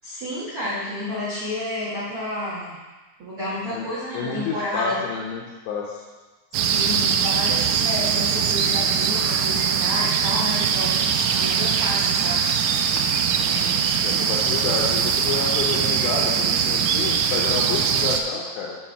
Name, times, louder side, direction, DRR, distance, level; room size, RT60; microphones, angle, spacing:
voice 1, 0.0-2.7 3.2-5.0 6.5-12.4, left 1 dB, 65° right, -9 dB, 1.3 m, -30 dB
voice 2, 4.1-6.0 14.0-18.8, left 5 dB, 80° left, -2 dB, 2.6 m, -29 dB
sound 1, 6.5-18.2, right 7 dB, 85° right, 3.1 m, -22 dB
7.6 x 5.0 x 5.7 m, 1.2 s
omnidirectional pair, 5.8 m